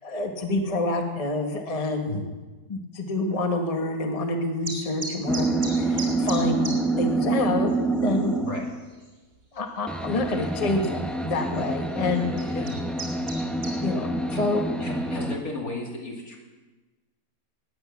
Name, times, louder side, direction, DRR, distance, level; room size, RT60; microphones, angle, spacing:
voice 1, 0.0-2.2 2.7-5.5 5.7-6.7 7.0-7.7 8.0-8.3 9.5-12.5 13.8-14.1 14.4-14.6, left 2 dB, 25° left, 3 dB, 1.2 m, -27 dB
sound 1, 4.6-6.8 7.1-7.2 7.7-7.8 8.0-8.5 9.0-9.1 10.5-10.6 11.4-11.6 12.2-13.8, right 2 dB, 50° right, 3.1 m, -35 dB
sound 2, 5.3-8.8 9.9-15.4, right 2 dB, ahead, 0.7 m, -27 dB
voice 2, 14.8-16.4, left 2 dB, 65° left, -1 dB, 3.1 m, -34 dB
18.5 x 8.2 x 7.0 m, 1.2 s
omnidirectional pair, 1.6 m